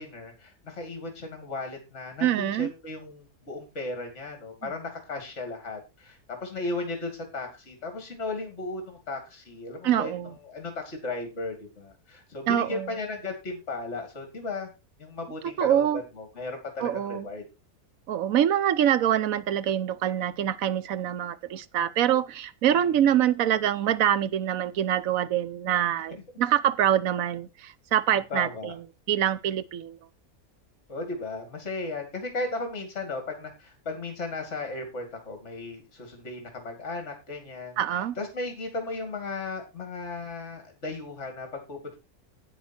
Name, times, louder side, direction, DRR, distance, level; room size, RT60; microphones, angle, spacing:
voice 1, 0.0-14.7 15.0-17.4 22.7-22.8 26.1-26.2 28.3-28.8 30.9-42.0, left 3 dB, 50° left, 2.8 m, -36 dB
voice 2, 2.2-2.7 9.8-10.3 12.5-12.9 15.6-16.0 16.8-17.2 18.1-28.7 29.1-30.0 37.8-38.1, right 10 dB, 70° right, 1.2 m, -25 dB
10.0 x 9.0 x 4.3 m
omnidirectional pair, 1.6 m